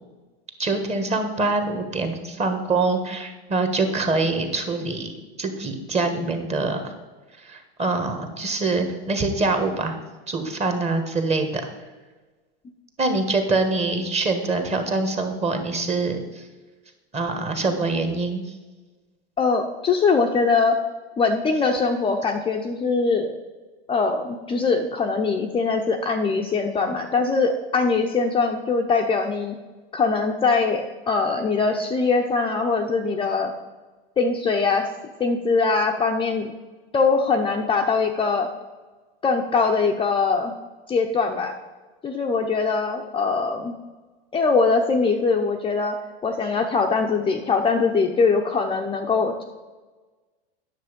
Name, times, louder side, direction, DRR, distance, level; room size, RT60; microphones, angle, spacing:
voice 1, 0.6-5.1 5.4-6.9 7.4-10.0 10.3-11.6 13.0-16.4 17.1-18.4, right 3 dB, 20° right, 6 dB, 1.4 m, -24 dB
voice 2, 19.4-20.7 21.2-23.3 23.9-29.6 29.9-33.5 34.2-34.9 35.2-36.5 36.9-38.5 39.2-40.5 40.9-41.5 42.0-43.8 44.3-46.0 46.2-49.4, left 4 dB, 15° left, 2 dB, 0.7 m, -22 dB
9.4 x 6.8 x 5.2 m, 1.3 s
hypercardioid pair, 115°, 30 cm